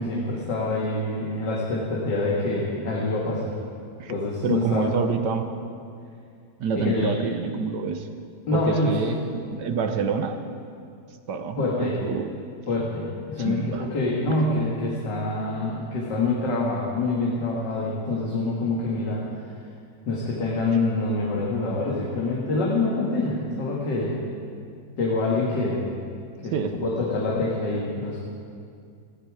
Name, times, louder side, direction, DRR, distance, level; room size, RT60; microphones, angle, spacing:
voice 1, 0.0-3.6 4.1-4.9 6.8-7.1 8.5-9.0 11.6-12.0 12.7-19.2 20.1-24.2 25.0-25.9 26.4-28.3, left 2 dB, 80° left, -4 dB, 2.5 m, -26 dB
voice 2, 4.4-5.5 6.6-8.1 8.5-10.4 11.3-12.4 13.4-13.9 26.5-26.7, right 5 dB, 75° right, 7 dB, 1.6 m, -27 dB
19.5 x 14.5 x 4.9 m, 2.4 s
omnidirectional pair, 1.9 m